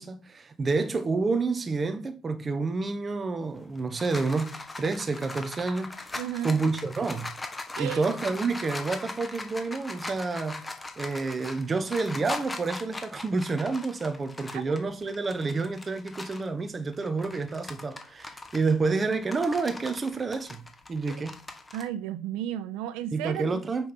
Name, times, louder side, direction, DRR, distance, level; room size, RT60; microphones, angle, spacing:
voice 1, 0.0-6.1 6.4-7.3 7.8-10.7 11.0-20.6 20.9-21.4 23.1-23.9, right 4 dB, 15° right, 1.0 m, -29 dB
sound 1, 3.5-16.5 16.9-21.8, left 2 dB, 10° left, 1.1 m, -40 dB
voice 2, 6.2-6.6 7.7-8.1 14.5-14.6 21.1-21.2 21.7-23.6, right 12 dB, 80° right, 1.0 m, -33 dB
8.3 x 6.1 x 5.4 m
cardioid pair, 170°, 0 cm